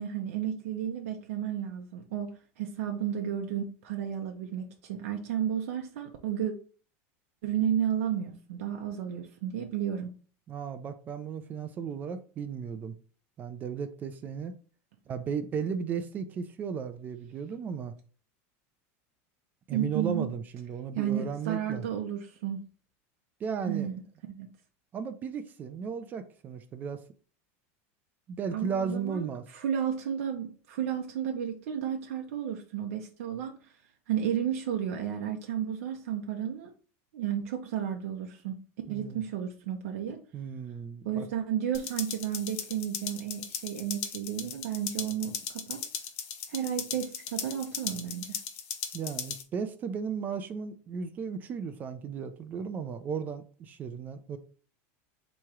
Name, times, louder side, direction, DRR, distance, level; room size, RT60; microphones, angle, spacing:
voice 1, 0.0-6.5 7.4-10.1 19.7-20.3 20.9-22.6 23.6-24.0 24.3-24.5 28.5-33.7 34.1-36.7 37.1-38.5 38.9-40.2 41.0-45.8 46.5-48.4, right 9 dB, 75° right, 0.6 m, -32 dB
voice 2, 10.5-13.0 13.4-14.5 15.1-17.9 19.7-21.8 23.4-23.9 24.9-27.0 28.3-29.4 38.9-39.2 40.3-41.3 48.9-54.4, right 6 dB, 25° right, 0.4 m, -35 dB
sound 1, 41.7-49.4, left 8 dB, 45° left, 0.6 m, -38 dB
3.6 x 3.0 x 4.5 m
supercardioid pair, 160°, 7 cm